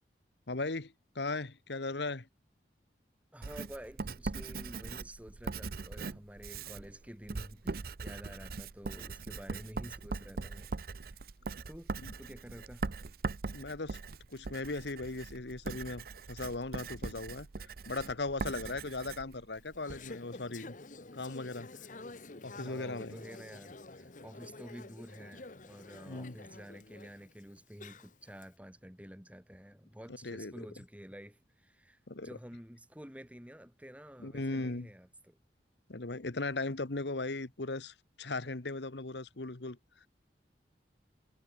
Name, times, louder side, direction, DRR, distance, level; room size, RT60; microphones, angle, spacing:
voice 1, 0.5-2.3 12.0-12.1 13.5-14.0 14.3-20.8 21.1-21.7 22.4-23.2 26.0-26.3 30.2-30.7 32.1-32.4 34.2-34.9 35.9-40.1, left 3 dB, 75° left, 1.3 m, -38 dB
voice 2, 3.3-10.7 11.0-11.2 11.7-11.9 12.2-12.9 18.4-18.7 21.7-21.9 22.5-35.4, equal, 10° right, 3.4 m, -50 dB
Writing, 3.4-20.0, right 3 dB, 55° right, 0.7 m, -41 dB
Conversation / Chatter, 19.5-28.5, left 3 dB, 45° left, 1.1 m, -50 dB
head